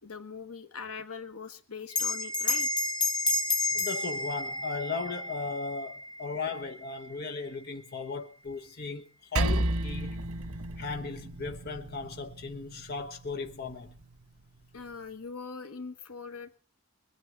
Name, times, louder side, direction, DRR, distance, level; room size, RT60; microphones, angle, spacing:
voice 1, 0.0-2.7 14.7-16.6, left 5 dB, 80° left, 1.5 m, -42 dB
Bell, 1.9-6.8, left 3 dB, 20° left, 1.2 m, -31 dB
voice 2, 3.7-9.1 9.3-10.2 10.8-13.9, left 4 dB, 45° left, 1.2 m, -37 dB
sound 1, 3.9-5.6, right 10 dB, ahead, 4.4 m, -52 dB
Percussion, 9.4-14.1, right 1 dB, 80° right, 1.4 m, -33 dB
22.0 x 9.3 x 6.0 m
head